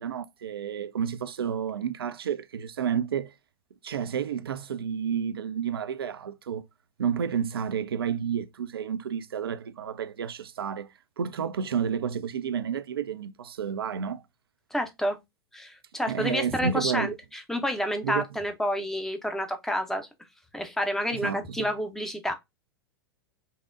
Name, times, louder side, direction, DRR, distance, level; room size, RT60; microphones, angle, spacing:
voice 1, 0.0-3.3 3.8-6.7 7.0-10.9 11.2-14.2 16.1-17.1 18.0-18.2 21.1-21.7, right 7 dB, 70° right, 0.4 m, -30 dB
voice 2, 14.7-15.2 15.5-20.1 20.5-22.3, equal, 5° left, 0.5 m, -29 dB
5.3 x 2.0 x 2.4 m
figure-of-eight pair, 95°, 13 cm